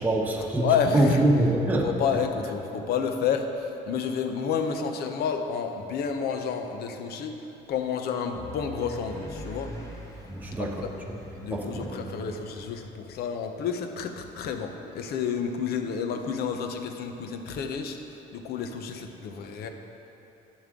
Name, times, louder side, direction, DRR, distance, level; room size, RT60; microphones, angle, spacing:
voice 1, 0.0-1.9 10.3-10.8 11.5-12.0, right 1 dB, 10° right, -1 dB, 1.0 m, -24 dB
voice 2, 0.6-1.2 1.8-7.4 7.7-9.7 10.6-10.9 11.3-19.7, left 6 dB, 70° left, 6 dB, 0.8 m, -30 dB
sound 1, 8.3-12.9, left 1 dB, 20° left, 1.4 m, -43 dB
10.5 x 7.3 x 3.7 m, 3.0 s
cardioid pair, 110°, 17 cm